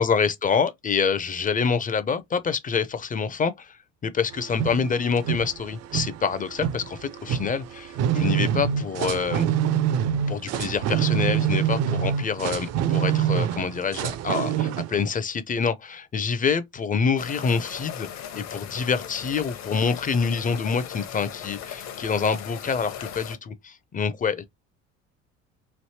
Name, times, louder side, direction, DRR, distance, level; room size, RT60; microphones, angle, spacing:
voice 1, 0.0-9.5 10.3-18.1 18.3-24.4, left 5 dB, 20° left, 0.5 m, -26 dB
sound 1, 4.3-15.0, right 9 dB, 45° right, 0.5 m, -26 dB
sound 2, 17.2-23.4, left 9 dB, 45° left, 0.8 m, -38 dB
3.2 x 2.6 x 2.8 m
hypercardioid pair, 65°, 38 cm